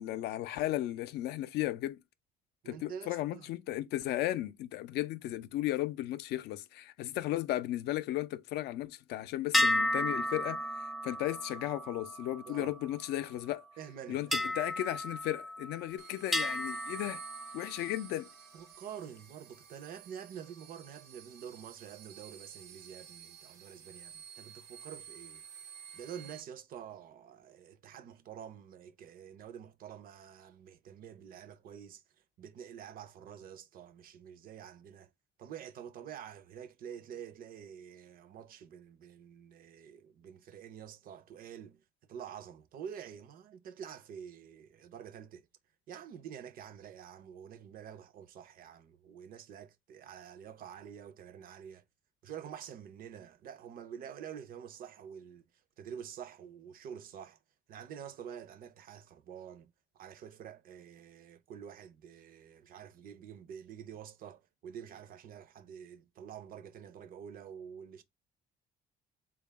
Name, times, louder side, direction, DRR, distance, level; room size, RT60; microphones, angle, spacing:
voice 1, 0.0-2.0 2.7-13.6 14.1-17.2 17.5-18.3, left 14 dB, 75° left, 0.4 m, -35 dB
voice 2, 2.6-3.5 12.4-12.7 13.8-14.6 18.5-25.4 25.9-32.0 32.4-35.1 35.4-41.8 42.1-45.5 45.9-51.8 52.2-55.4 55.8-57.4 57.7-68.0, right 8 dB, 60° right, 0.6 m, -48 dB
sound 1, 9.5-13.2 14.3-15.9 16.3-18.0, left 1 dB, ahead, 0.3 m, -34 dB
sound 2, 16.0-26.4, right 8 dB, 90° right, 1.0 m, -52 dB
3.6 x 2.3 x 3.3 m
cardioid pair, 110°, 17 cm